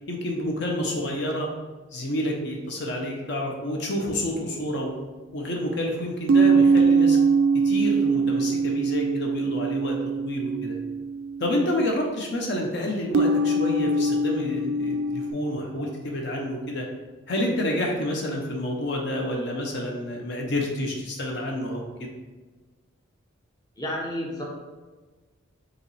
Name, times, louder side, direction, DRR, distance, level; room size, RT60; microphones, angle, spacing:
voice 1, 0.1-1.5 1.9-4.9 5.3-7.2 7.6-10.0 10.2-10.7 11.4-16.9 17.3-22.1, left 1 dB, 60° left, 0 dB, 0.7 m, -29 dB
sound 1, 4.8-4.9 6.3-11.7 13.1-15.3, right 3 dB, 90° right, 0.3 m, -22 dB
voice 2, 23.8-24.5, left 1 dB, 20° left, -3 dB, 0.7 m, -30 dB
4.9 x 3.0 x 3.2 m, 1.3 s
head